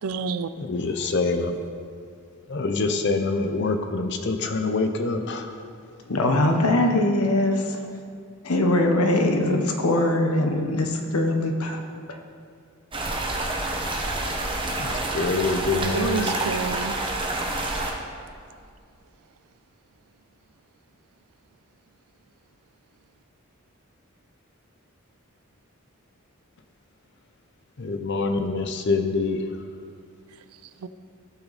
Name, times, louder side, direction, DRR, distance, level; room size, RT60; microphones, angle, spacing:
voice 1, 0.0-0.5 15.7-17.0 30.8-30.9, right 5 dB, 90° right, 12 dB, 0.4 m, -29 dB
voice 2, 0.6-1.6 2.5-5.6 14.8-16.5 27.8-29.5, left 3 dB, 55° left, 6 dB, 0.6 m, -25 dB
voice 3, 6.1-7.9 8.4-11.8 12.1-12.2, left 1 dB, 90° left, 4 dB, 1.1 m, -22 dB
sound 1, 12.9-17.9, right 2 dB, 25° right, 1.0 m, -28 dB
15.5 x 5.9 x 4.2 m, 2.2 s
head